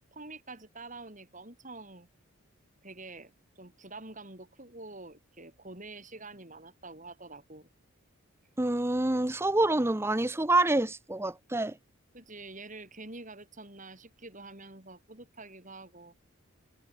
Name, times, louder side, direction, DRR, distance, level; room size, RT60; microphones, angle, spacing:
voice 1, 0.1-2.1 2.8-7.7 12.1-16.3, right 2 dB, 35° right, 6.1 m, -47 dB
voice 2, 8.6-11.7, right 2 dB, 10° right, 0.7 m, -27 dB
head